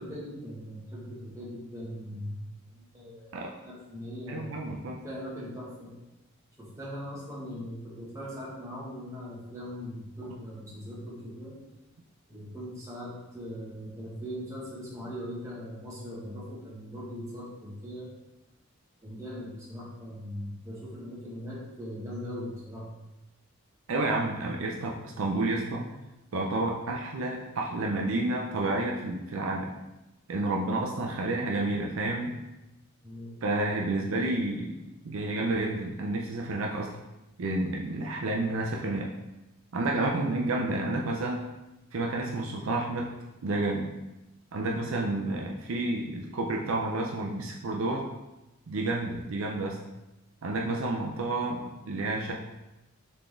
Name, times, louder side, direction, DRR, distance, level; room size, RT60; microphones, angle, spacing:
voice 1, 0.0-4.6 5.0-5.9 6.6-11.5 12.3-18.1 19.0-22.9 33.0-33.4, equal, 15° right, -7 dB, 1.3 m, -40 dB
voice 2, 4.3-5.0 23.9-25.9 26.3-29.7 30.3-32.4 33.4-34.8 35.0-36.9 37.4-39.1 39.7-41.4 41.9-43.1 43.4-43.9 44.5-48.0 48.7-49.8 50.4-52.3, right 2 dB, 65° right, -1 dB, 0.5 m, -30 dB
3.9 x 3.7 x 3.4 m, 0.98 s
head